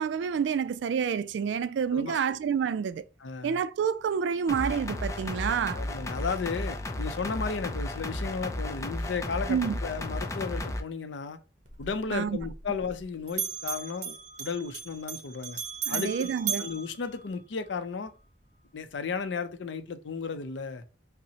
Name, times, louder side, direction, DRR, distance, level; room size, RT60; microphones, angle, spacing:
voice 1, 0.0-3.0 3.4-5.8 9.5-9.8 12.1-12.4 15.9-16.7, right 7 dB, 75° right, 0.3 m, -28 dB
voice 2, 3.2-3.6 5.7-11.4 11.8-15.6 15.9-16.3 16.6-18.1 18.7-20.8, left 5 dB, 90° left, 0.5 m, -34 dB
sound 1, 4.5-10.8, left 1 dB, 15° left, 0.4 m, -34 dB
Bell, 11.6-13.0 13.3-17.8, right 7 dB, 45° right, 0.8 m, -37 dB
5.5 x 2.0 x 2.7 m
head